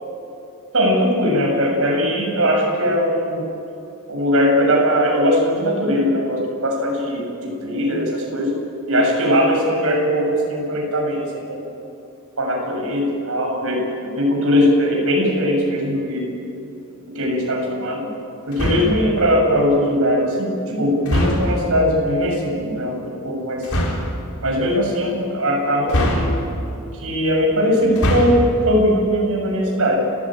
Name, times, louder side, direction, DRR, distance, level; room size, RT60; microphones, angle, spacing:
voice 1, 0.7-3.4 4.1-8.5 8.9-11.6 12.4-16.3 17.1-18.1 18.5-23.9 24.4-26.3 27.0-30.0, equal, 70° right, 0 dB, 7.2 m, -20 dB
sound 1, 18.5-19.1 21.0-21.7 23.6-24.1 25.9-26.7 27.8-28.5, equal, 75° left, 4.6 m, -21 dB
30.0 x 15.5 x 9.0 m, 2.8 s
head